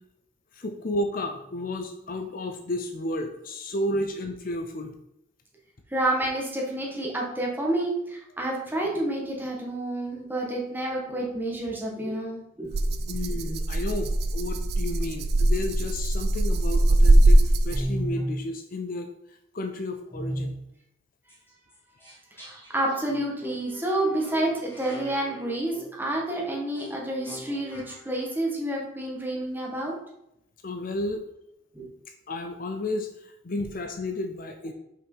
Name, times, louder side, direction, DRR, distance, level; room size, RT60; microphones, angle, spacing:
voice 1, 0.5-5.0 13.1-19.1 19.5-20.6 30.6-31.2 32.3-33.1 33.4-34.7, left 1 dB, 45° left, 6 dB, 0.6 m, -32 dB
voice 2, 5.9-12.7 22.4-29.9 31.7-31.9, right 1 dB, 10° right, -2 dB, 1.5 m, -29 dB
Rattle (instrument), 12.7-18.1, right 1 dB, 55° right, 0.5 m, -21 dB
sound 1, 17.6-18.4 20.1-20.6 21.3-21.4 21.7-21.8 22.0-28.2, right 1 dB, 10° left, 2.1 m, -36 dB
5.8 x 4.9 x 5.4 m, 0.81 s
head